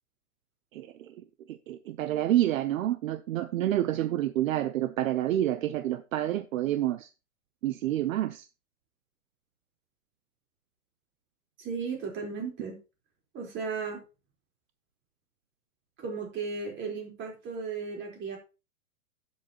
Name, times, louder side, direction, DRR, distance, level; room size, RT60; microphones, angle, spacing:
voice 1, 0.7-1.1 1.5-7.1 7.6-8.4, right 13 dB, 60° right, 0.9 m, -28 dB
voice 2, 11.6-12.8 13.3-14.0 16.0-18.4, right 5 dB, 25° right, 4.1 m, -35 dB
11.5 x 7.5 x 2.9 m
hypercardioid pair, 150°, 45 cm